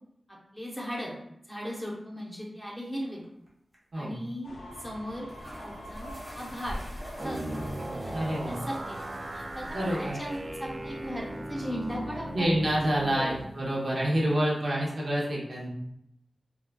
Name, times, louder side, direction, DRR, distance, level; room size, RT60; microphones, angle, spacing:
voice 1, 0.3-1.1 1.5-3.2 3.9-4.5 4.8-5.3 5.6-6.8 7.1-7.4 7.9-9.0 9.3-12.5 13.1-13.4, equal, 10° left, -4 dB, 0.8 m, -37 dB
sound 1, 3.2-3.5 3.7-3.8 4.9-5.0 5.3-14.7, equal, 25° right, 1.0 m, -50 dB
sound 2, 4.4-13.1, left 1 dB, 85° left, 0.5 m, -46 dB
sound 3, 7.2-13.4, right 1 dB, 40° right, 0.3 m, -37 dB
voice 2, 8.1-8.6 9.7-10.2 12.3-15.7, equal, 70° right, -5 dB, 0.9 m, -28 dB
3.8 x 2.3 x 2.2 m, 0.76 s
wide cardioid pair, 100°, 0 cm